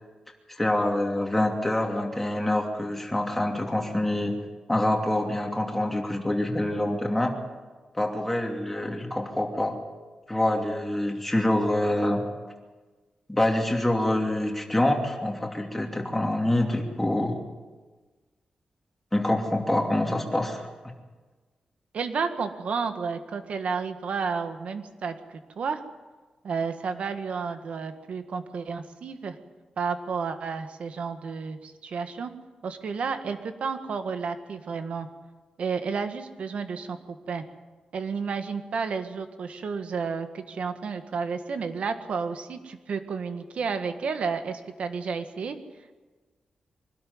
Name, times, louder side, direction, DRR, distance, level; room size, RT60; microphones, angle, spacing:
voice 1, 0.5-4.3 4.7-7.3 7.9-9.8 10.3-12.2 13.3-17.4 19.1-20.6, left 1 dB, 10° left, 1 dB, 2.8 m, -26 dB
voice 2, 21.9-25.8 26.4-29.4 29.8-32.3 32.6-35.1 35.6-37.4 37.9-45.6, right 5 dB, 65° right, 8 dB, 1.7 m, -31 dB
24.0 x 12.5 x 9.6 m, 1.3 s
wide cardioid pair, 155°, 2 cm